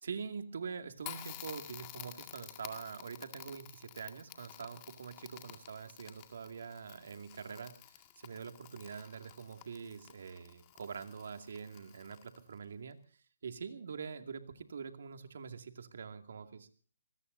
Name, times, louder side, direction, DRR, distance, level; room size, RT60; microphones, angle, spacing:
voice 1, 0.0-13.0 13.4-16.7, right 6 dB, 65° right, 6 dB, 2.4 m, -45 dB
Crackle, 1.0-12.6, left 14 dB, 25° left, 2.1 m, -51 dB
26.0 x 20.5 x 2.7 m, 0.43 s
hypercardioid pair, 155°, 0 cm